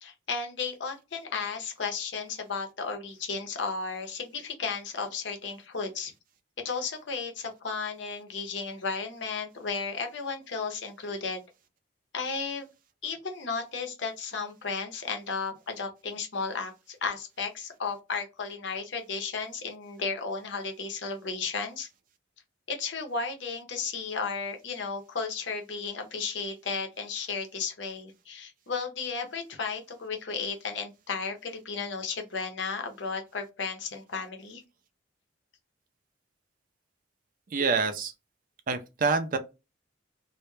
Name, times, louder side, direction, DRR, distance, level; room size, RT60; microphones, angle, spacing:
voice 1, 0.0-6.1 6.6-11.4 12.1-12.7 13.0-21.9 22.7-34.6, left 5 dB, 65° left, 0.6 m, -34 dB
voice 2, 37.5-38.1 38.7-39.4, right 4 dB, 45° right, 0.4 m, -26 dB
2.1 x 2.0 x 3.0 m
head